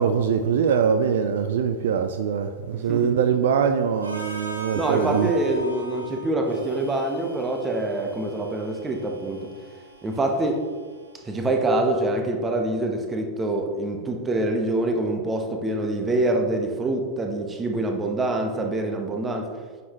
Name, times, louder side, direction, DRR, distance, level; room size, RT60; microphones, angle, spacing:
voice 1, 0.0-5.3, right 7 dB, 60° right, 0.4 m, -23 dB
voice 2, 2.7-3.2 4.7-9.5 10.0-10.6 11.2-19.5, right 2 dB, 15° right, 1.1 m, -25 dB
Harmonica, 4.0-11.9, equal, 85° right, 1.5 m, -40 dB
9.4 x 6.6 x 3.1 m
figure-of-eight pair, 90°, 0 cm